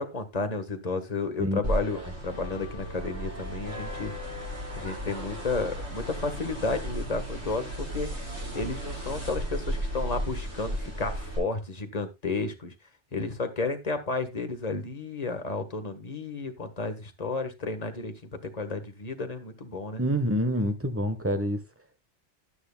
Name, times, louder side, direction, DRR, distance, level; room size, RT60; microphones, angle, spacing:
voice 1, 0.0-4.1 4.8-8.1 8.5-12.7 13.1-20.0, left 3 dB, 35° left, 1.5 m, -32 dB
sound 1, 1.6-11.4, equal, 70° right, 6.8 m, -35 dB
voice 2, 20.0-21.6, equal, 10° right, 1.1 m, -27 dB
12.5 x 10.0 x 2.3 m
omnidirectional pair, 1.2 m